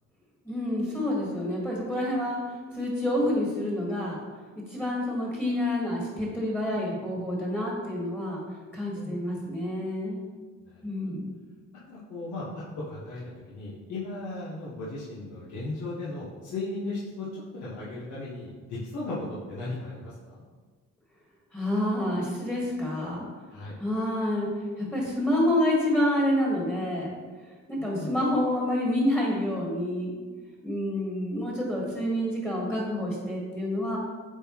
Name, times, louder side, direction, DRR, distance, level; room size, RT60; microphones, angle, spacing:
voice 1, 0.4-4.2 4.7-8.4 8.7-10.3 10.8-11.4 21.5-23.3 23.8-24.5 24.8-27.1 27.7-30.1 30.6-34.0, left 1 dB, 5° left, -4 dB, 1.7 m, -28 dB
voice 2, 10.7-11.1 11.9-13.2 13.5-19.2 19.5-20.4 23.5-23.8 27.8-28.2, left 2 dB, 75° left, -8 dB, 1.5 m, -36 dB
7.9 x 3.9 x 3.1 m, 1.4 s
cardioid pair, 90°, 30 cm